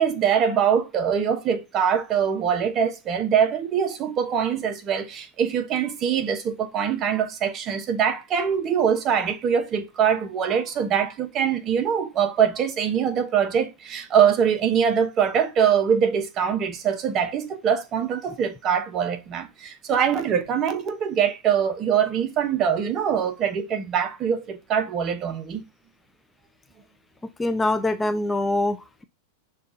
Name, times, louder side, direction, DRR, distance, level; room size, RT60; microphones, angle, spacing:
voice 1, 0.0-25.6, right 8 dB, 35° right, 0.8 m, -23 dB
voice 2, 27.4-29.0, left 2 dB, 10° left, 0.3 m, -24 dB
6.5 x 2.4 x 2.6 m
hypercardioid pair, 105°, 0 cm